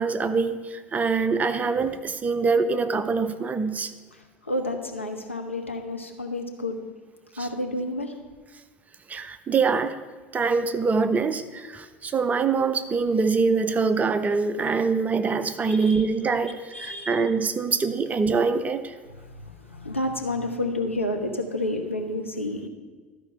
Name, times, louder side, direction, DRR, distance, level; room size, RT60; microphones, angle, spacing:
voice 1, 0.0-3.9 9.1-10.0 10.3-19.0, right 4 dB, 25° right, 10 dB, 0.6 m, -24 dB
voice 2, 4.1-6.8 7.4-8.1 15.7-16.0 16.7-17.2 19.1-22.7, left 1 dB, 90° left, 3 dB, 0.8 m, -30 dB
13.0 x 4.5 x 5.5 m, 1.4 s
figure-of-eight pair, 70°, 7 cm